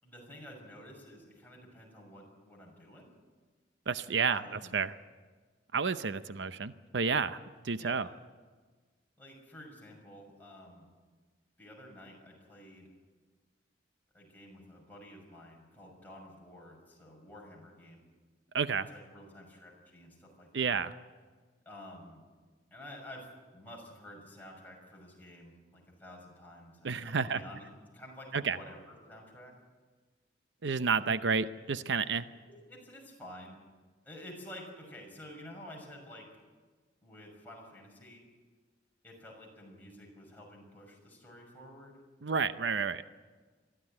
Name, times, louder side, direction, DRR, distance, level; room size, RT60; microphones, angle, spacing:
voice 1, 0.0-3.1 4.2-4.8 7.8-8.1 9.2-10.9 11.6-12.9 14.1-18.0 18.9-20.7 21.6-22.2 22.7-27.7 27.9-29.5 32.4-33.6 34.0-36.3 37.0-38.2 39.0-42.0, left 1 dB, 10° left, -2 dB, 6.1 m, -50 dB
voice 2, 3.9-4.9 5.7-7.4 7.6-8.1 18.5-18.9 20.5-20.9 26.8-27.4 28.3-28.6 30.6-32.3 42.2-43.0, right 5 dB, 85° right, 13 dB, 0.7 m, -30 dB
22.5 x 14.0 x 9.9 m, 1.4 s
head